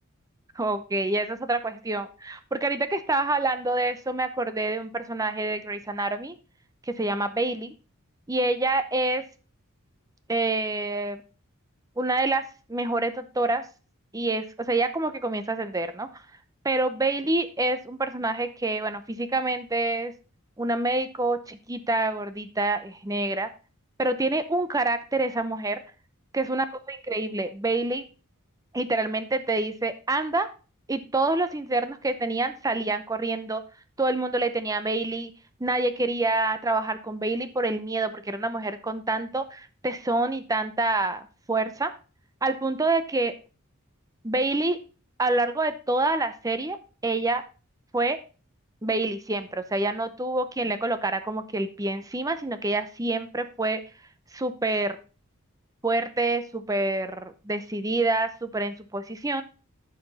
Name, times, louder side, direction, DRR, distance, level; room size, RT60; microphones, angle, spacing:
voice 1, 0.6-6.4 6.9-7.7 8.3-9.2 10.3-11.2 12.0-12.4 12.7-13.6 14.1-16.1 16.6-20.1 20.6-23.5 24.0-25.8 26.3-28.1 28.7-30.5 30.9-33.6 34.0-35.3 35.6-41.9 42.4-43.3 44.2-44.8 45.2-46.8 47.0-47.4 47.9-48.2 48.8-53.8 54.3-55.0 55.8-59.4, right 2 dB, 15° right, 11 dB, 0.7 m, -27 dB
12.5 x 5.1 x 4.1 m, 0.35 s
head